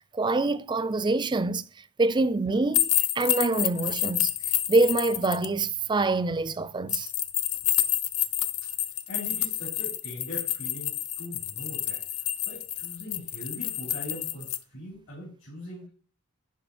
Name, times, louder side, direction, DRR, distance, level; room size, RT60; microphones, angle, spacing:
voice 1, 0.0-1.6 2.0-4.3 4.7-7.1, right 2 dB, 20° right, 0.4 m, -25 dB
sound 1, 2.7-5.5 6.9-14.6, left 12 dB, 90° left, 0.6 m, -29 dB
voice 2, 9.1-15.9, left 1 dB, 65° left, 4.0 m, -41 dB
11.0 x 5.0 x 4.3 m
head